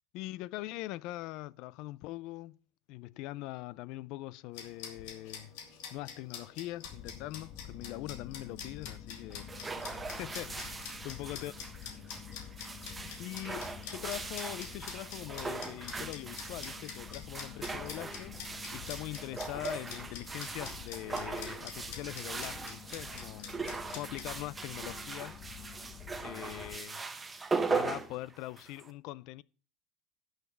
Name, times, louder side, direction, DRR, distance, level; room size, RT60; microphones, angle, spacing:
voice 1, 0.1-2.6 2.9-5.5 5.9-11.5 13.2-23.5 23.9-25.4 26.2-27.0 27.7-29.4, left 17 dB, 55° left, 0.4 m, -42 dB
sound 1, 4.5-24.3, left 7 dB, 70° left, 2.6 m, -48 dB
sound 2, 6.8-26.8, left 9 dB, 35° left, 0.9 m, -49 dB
sound 3, 9.3-28.9, right 4 dB, 10° right, 0.8 m, -39 dB
10.5 x 6.5 x 6.8 m
supercardioid pair, 155°, 0 cm